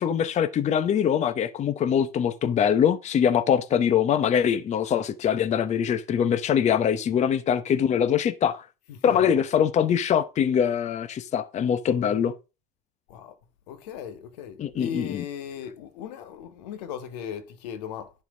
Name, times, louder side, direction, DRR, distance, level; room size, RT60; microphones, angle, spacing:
voice 1, 0.0-8.6 9.0-12.3 14.6-15.2, left 8 dB, 35° left, 0.9 m, -23 dB
voice 2, 8.9-9.4 13.1-13.3 13.7-18.1, left 8 dB, 85° left, 1.6 m, -37 dB
10.5 x 4.7 x 6.1 m
supercardioid pair, 115°, 20 cm